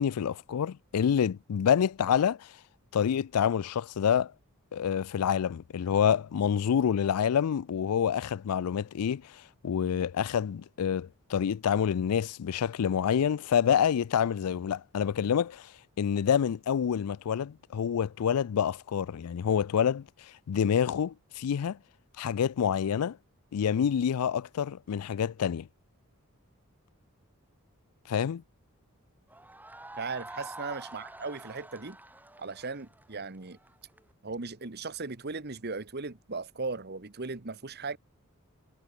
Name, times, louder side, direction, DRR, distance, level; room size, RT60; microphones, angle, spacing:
voice 1, 0.0-2.5 2.9-4.3 4.7-15.7 16.0-21.8 22.2-23.2 23.5-25.7 28.1-28.4, left 8 dB, 85° left, 0.4 m, -27 dB
sound 1, 29.3-34.0, right 1 dB, 10° right, 3.3 m, -46 dB
voice 2, 30.0-32.0 32.4-33.6 34.2-38.0, right 4 dB, 45° right, 1.2 m, -37 dB
head